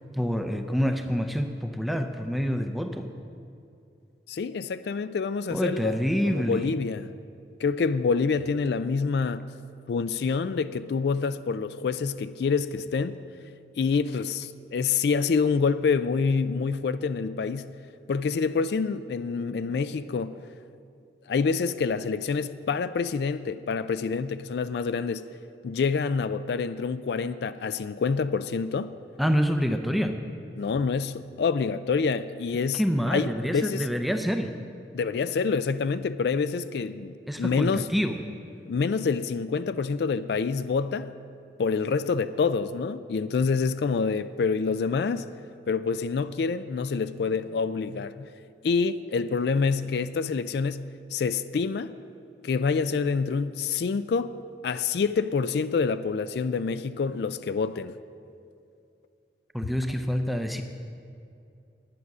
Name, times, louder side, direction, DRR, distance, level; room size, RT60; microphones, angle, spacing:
voice 1, 0.1-3.1 5.5-6.7 29.2-30.2 32.7-34.5 37.3-38.2 59.5-60.6, equal, ahead, 0.5 m, -27 dB
voice 2, 4.3-7.1 7.6-9.5 9.9-13.2 13.8-17.8 18.1-20.4 21.3-25.3 25.6-29.0 30.6-32.8 33.1-33.9 34.9-37.9 38.7-41.1 41.6-45.3 45.7-48.3 48.6-51.9 52.4-54.3 54.6-57.9, left 5 dB, 65° left, 0.3 m, -27 dB
10.5 x 9.5 x 6.1 m
head